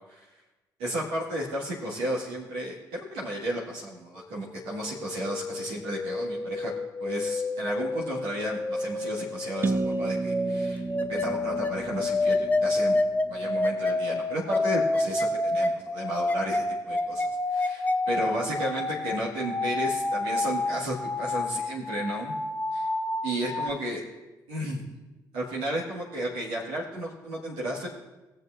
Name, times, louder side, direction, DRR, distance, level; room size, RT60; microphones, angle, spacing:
voice 1, 0.8-6.7 7.0-10.8 11.1-12.9 13.3-22.3 22.7-22.9 23.2-24.0 24.5-24.9 25.3-27.9, right 1 dB, 65° right, -5 dB, 1.7 m, -33 dB
sound 1, 4.5-23.7, left 2 dB, 15° left, 0.8 m, -29 dB
sound 2, 9.6-13.5, right 3 dB, 20° right, 0.4 m, -33 dB
18.5 x 7.8 x 2.5 m, 1.1 s
figure-of-eight pair, 45°, 10 cm